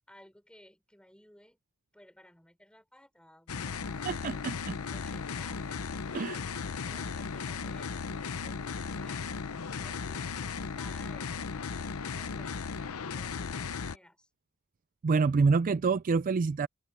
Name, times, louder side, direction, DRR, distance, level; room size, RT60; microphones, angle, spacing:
voice 1, 0.0-1.6 1.9-4.5 4.8-14.3, left 1 dB, 5° left, 5.2 m, -58 dB
sound 1, 3.5-14.0, left 5 dB, 70° left, 0.7 m, -36 dB
voice 2, 4.0-4.7 6.1-6.4 15.0-16.7, right 4 dB, 40° right, 0.3 m, -27 dB
head